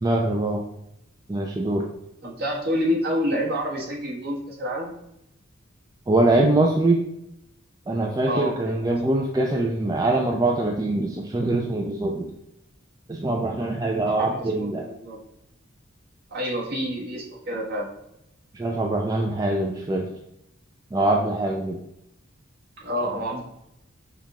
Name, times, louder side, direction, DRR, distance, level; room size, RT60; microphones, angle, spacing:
voice 1, 0.0-0.6 1.3-1.9 6.1-7.1 7.9-12.3 13.1-14.9 18.5-20.1 20.9-21.8, right 2 dB, 20° right, 1 dB, 0.3 m, -23 dB
voice 2, 2.2-4.9 8.3-8.5 8.8-9.0 14.3-15.2 16.3-17.9 22.8-23.4, equal, 55° right, -3 dB, 1.4 m, -28 dB
5.6 x 2.3 x 3.6 m, 0.82 s
head